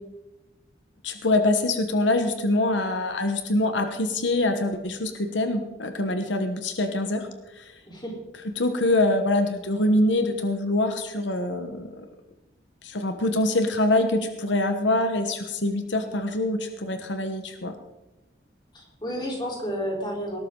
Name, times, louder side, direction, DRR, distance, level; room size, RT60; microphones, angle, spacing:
voice 1, 1.0-7.8 8.4-12.0 12.8-17.7, left 2 dB, 85° left, 7 dB, 1.3 m, -24 dB
voice 2, 18.7-20.4, equal, 25° left, -1 dB, 4.2 m, -31 dB
19.5 x 12.0 x 3.9 m, 1.0 s
head